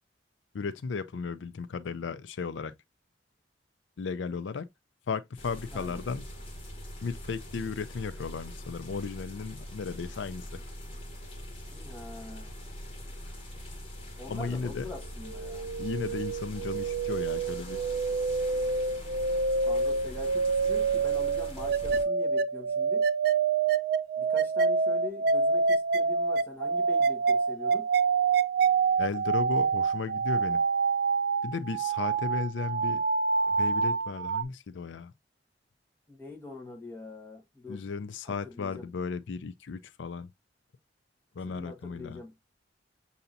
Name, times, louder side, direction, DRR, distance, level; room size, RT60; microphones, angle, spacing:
voice 1, 0.5-2.7 4.0-4.7 5.1-6.3 7.0-10.6 14.3-14.9 15.8-17.8 29.0-30.6 31.4-33.0 33.5-35.1 37.7-40.3 41.4-42.2, left 5 dB, 85° left, 0.4 m, -35 dB
sound 1, 5.4-22.0, equal, 30° left, 1.7 m, -43 dB
voice 2, 11.7-12.6 14.2-15.7 19.6-23.1 24.2-27.9 36.1-37.9 38.2-38.9 41.5-42.3, left 3 dB, 10° left, 1.3 m, -44 dB
sound 2, 15.3-34.4, right 5 dB, 60° right, 0.4 m, -27 dB
6.7 x 2.8 x 2.6 m
head